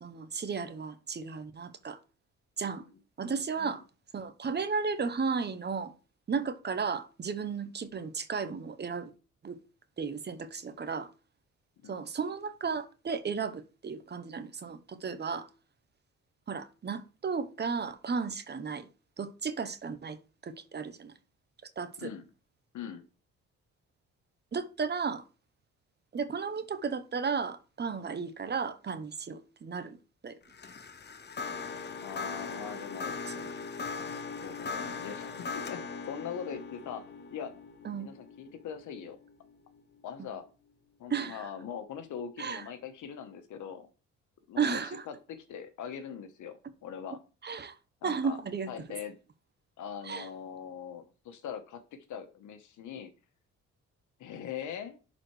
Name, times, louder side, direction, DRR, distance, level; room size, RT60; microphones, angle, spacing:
voice 1, 0.0-2.0 2.6-2.8 3.2-3.8 4.1-5.9 6.3-9.1 9.4-9.6 10.0-11.1 11.9-15.5 16.5-18.9 19.2-20.2 20.4-21.1 21.8-22.1 24.5-25.2 26.1-30.0 30.2-30.3 33.4-33.5 37.8-38.1 41.1-41.4 42.4-42.6 44.6-45.0 47.4-47.7 48.0-48.7 50.1-50.3, right 5 dB, 35° right, 0.9 m, -34 dB
sound 1, 30.5-39.8, left 4 dB, 35° left, 1.0 m, -40 dB
voice 2, 32.0-33.2 34.4-37.0 37.3-37.6 37.9-39.2 40.0-40.5 41.0-43.9 44.5-47.2 48.0-48.4 48.7-49.2 49.8-53.1 54.2-55.0, left 8 dB, 75° left, 1.2 m, -41 dB
11.0 x 4.2 x 3.2 m
cardioid pair, 90°, 30 cm